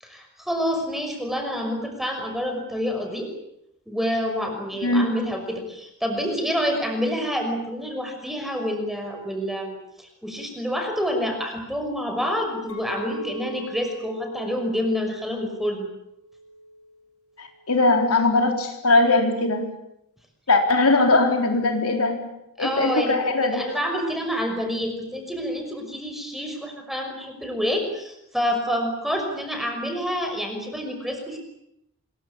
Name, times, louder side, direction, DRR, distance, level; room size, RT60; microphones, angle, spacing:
voice 1, 0.0-3.3 3.9-15.9 22.6-31.4, equal, ahead, 4 dB, 5.8 m, -28 dB
voice 2, 4.8-5.2 17.4-19.7 20.5-22.2 22.6-23.6, left 2 dB, 80° left, 4 dB, 4.0 m, -20 dB
Chink clink, 12.7-17.0 17.4-17.8, equal, 60° left, 7.6 m, -40 dB
26.5 x 22.5 x 8.5 m, 0.81 s
head